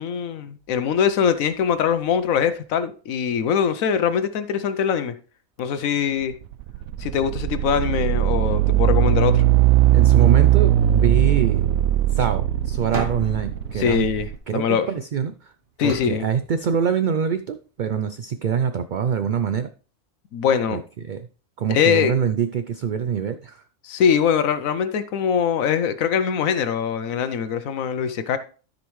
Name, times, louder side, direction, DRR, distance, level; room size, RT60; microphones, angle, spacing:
voice 1, 0.0-5.1 5.6-6.3 7.0-9.4 13.7-14.3 14.5-14.9 15.8-16.3 20.3-20.8 21.7-22.1 23.8-28.4, left 7 dB, 80° left, 1.1 m, -22 dB
sound 1, 6.3-14.4, right 12 dB, 85° right, 1.0 m, -19 dB
voice 2, 9.9-11.7 12.1-14.1 14.5-15.5 15.8-19.7 20.7-21.3 21.6-23.6, right 7 dB, 70° right, 0.4 m, -24 dB
sound 2, 12.9-15.1 15.8-17.2, right 3 dB, 40° right, 1.7 m, -36 dB
13.5 x 5.2 x 3.1 m
omnidirectional pair, 1.4 m